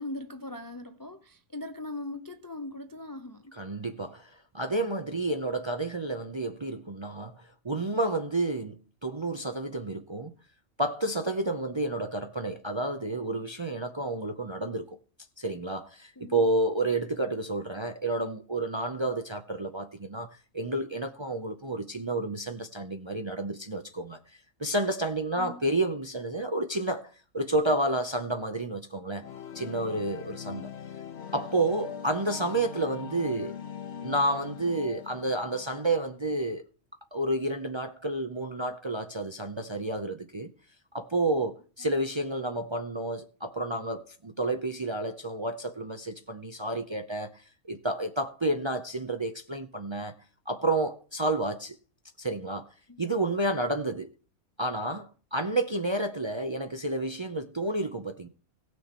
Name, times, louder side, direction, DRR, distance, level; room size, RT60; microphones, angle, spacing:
voice 1, 0.0-3.5 16.2-16.5 25.4-25.6 52.9-53.0, left 2 dB, 25° left, 0.5 m, -40 dB
voice 2, 3.5-10.3 10.8-15.0 15.4-29.2 29.5-30.7 31.3-33.5 34.0-36.6 37.1-40.5 40.9-50.2 50.5-51.8 52.2-52.7 53.0-54.1 54.6-58.3, right 2 dB, 40° right, 0.4 m, -30 dB
sound 1, 29.2-36.1, left 8 dB, 55° left, 1.2 m, -42 dB
17.5 x 6.3 x 4.3 m
omnidirectional pair, 1.4 m